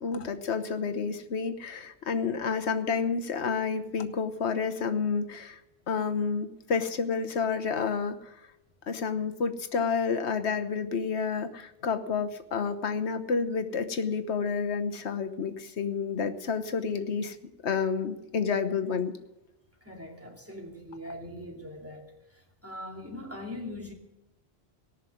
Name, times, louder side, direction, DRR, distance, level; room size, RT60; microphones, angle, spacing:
voice 1, 0.0-5.6 5.9-8.4 8.9-17.4 17.6-19.1, left 5 dB, 85° left, 7 dB, 1.4 m, -30 dB
voice 2, 19.8-23.9, left 1 dB, 10° right, 0 dB, 2.5 m, -41 dB
18.5 x 6.5 x 9.2 m, 0.92 s
omnidirectional pair, 1.1 m